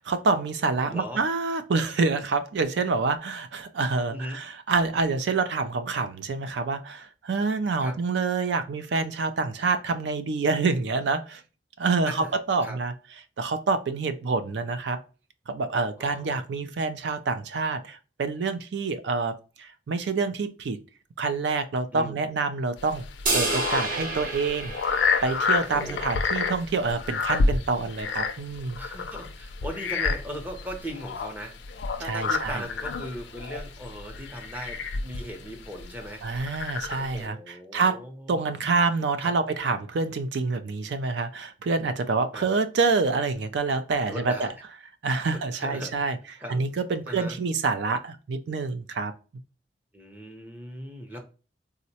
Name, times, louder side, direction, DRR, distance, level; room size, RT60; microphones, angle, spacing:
voice 1, 0.0-11.4 11.8-12.9 13.4-15.0 15.5-20.8 21.2-23.0 23.3-28.8 32.0-32.6 36.2-38.0 38.3-44.5 45.0-46.2 46.5-49.1, right 4 dB, 75° right, 0.4 m, -27 dB
voice 2, 0.9-1.2 4.1-4.4 7.8-8.0 12.1-12.3 12.6-12.8 16.0-16.4 21.9-22.2 25.6-26.1 28.8-36.4 37.0-38.4 39.2-39.3 42.3-42.5 44.1-44.5 45.5-46.0 46.4-46.6 47.1-47.4 49.9-51.2, equal, 10° right, 0.6 m, -38 dB
sound 1, 22.8-37.3, left 4 dB, 80° left, 0.4 m, -30 dB
sound 2, 23.3-25.8, right 2 dB, 55° right, 0.9 m, -29 dB
3.7 x 2.1 x 2.7 m
head